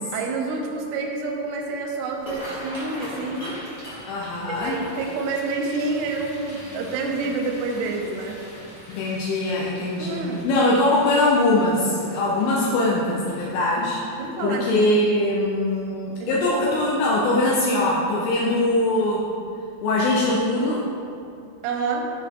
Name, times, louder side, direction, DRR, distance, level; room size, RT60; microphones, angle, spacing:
voice 1, 0.1-3.6 4.5-8.4 10.0-10.5 14.2-14.6 16.2-16.4 21.6-22.1, right 3 dB, 80° right, 0 dB, 2.4 m, -28 dB
sound 1, 2.1-15.2 15.7-16.0 16.3-16.7 17.1-17.3 18.5-18.7 19.0-19.2 19.6-19.7, equal, 65° left, 1.1 m, -41 dB
voice 2, 4.1-4.8 8.9-14.0 14.4-19.3 19.8-20.8, left 2 dB, 80° left, -4 dB, 3.2 m, -22 dB
12.0 x 4.5 x 3.6 m, 2.5 s
omnidirectional pair, 5.7 m